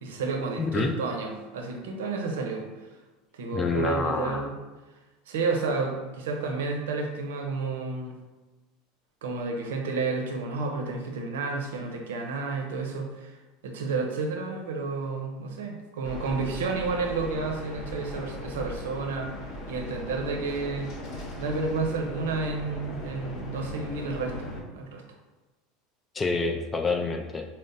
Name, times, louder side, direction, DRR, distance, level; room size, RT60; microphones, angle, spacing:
voice 1, 0.0-2.6 3.3-4.5 5.3-8.2 9.2-13.3 13.6-19.3 19.7-20.9 21.4-25.0, right 4 dB, 80° right, 2 dB, 0.6 m, -31 dB
voice 2, 0.6-0.9 3.5-4.5 26.1-27.5, left 4 dB, 25° left, 4 dB, 0.4 m, -27 dB
sound 1, 16.0-24.6, left 1 dB, 50° left, 0.9 m, -38 dB
4.0 x 2.0 x 3.8 m, 1.2 s
hypercardioid pair, 90°, 0 cm